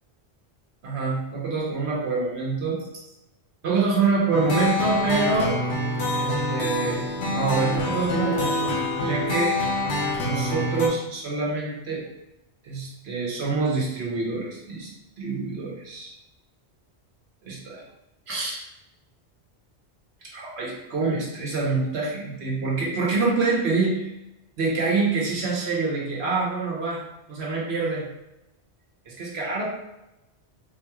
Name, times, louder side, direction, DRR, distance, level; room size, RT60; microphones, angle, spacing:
voice 1, 0.8-2.9 3.6-5.6 6.1-9.6 10.2-12.0 12.6-14.9 15.2-16.2 17.4-17.8 18.3-18.6 20.2-24.1 24.6-27.0 27.3-28.1 29.1-29.6, right 4 dB, 70° right, -3 dB, 1.2 m, -26 dB
sound 1, 4.3-10.9, left 2 dB, 75° left, 1.0 m, -26 dB
4.1 x 3.0 x 2.3 m, 0.92 s
omnidirectional pair, 1.1 m